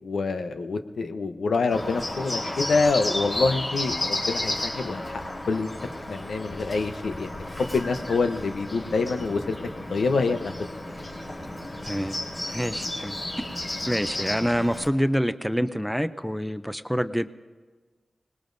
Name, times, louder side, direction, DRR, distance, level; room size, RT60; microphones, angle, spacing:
voice 1, 0.0-5.8 6.1-9.6 9.9-10.5, left 4 dB, 85° left, 7 dB, 0.8 m, -26 dB
Bird, 1.7-14.9, left 1 dB, 35° left, 3.6 m, -33 dB
voice 2, 11.8-12.2 12.5-13.5 13.9-17.3, equal, ahead, 12 dB, 0.5 m, -27 dB
25.5 x 19.5 x 2.6 m, 1.4 s
wide cardioid pair, 90°, 0 cm